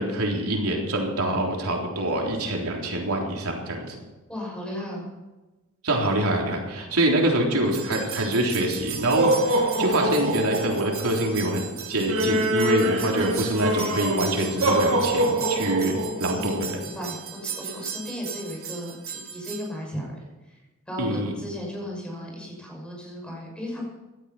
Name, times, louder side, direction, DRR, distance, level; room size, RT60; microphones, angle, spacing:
voice 1, 0.0-4.0 5.8-16.8 21.0-21.3, right 1 dB, 90° right, 0 dB, 3.7 m, -25 dB
voice 2, 4.3-5.1 16.3-20.6 20.9-23.9, equal, 5° left, -1 dB, 6.1 m, -35 dB
sound 1, 7.7-19.6, right 2 dB, 65° right, 2.6 m, -27 dB
17.0 x 12.5 x 5.8 m, 1.1 s
head